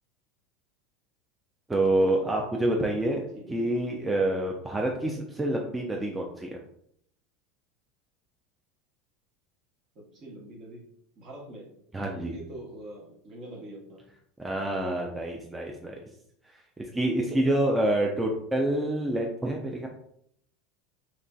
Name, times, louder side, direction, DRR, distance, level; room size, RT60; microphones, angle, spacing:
voice 1, 1.7-6.6 11.9-12.3 14.4-16.0 16.8-19.9, right 1 dB, 10° right, 0 dB, 0.4 m, -27 dB
voice 2, 3.3-3.8 9.9-10.9 11.2-11.7 12.1-14.0, right 1 dB, 45° right, 0 dB, 0.9 m, -44 dB
3.1 x 2.4 x 2.2 m, 0.70 s
hypercardioid pair, 90°, 0 cm